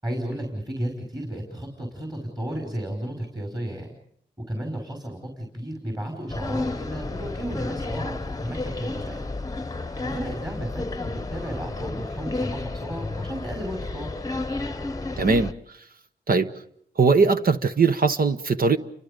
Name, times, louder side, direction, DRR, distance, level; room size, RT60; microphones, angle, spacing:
voice 1, 0.0-3.9 4.5-8.2 8.4-9.2 10.0-14.1, right 1 dB, 25° right, 5.2 m, -33 dB
sound 1, 6.3-15.5, left 2 dB, 20° left, 1.0 m, -31 dB
voice 2, 15.2-15.5 16.3-16.5 17.0-18.8, right 4 dB, 55° right, 1.1 m, -20 dB
30.0 x 24.0 x 5.3 m
cardioid pair, 70°, 18 cm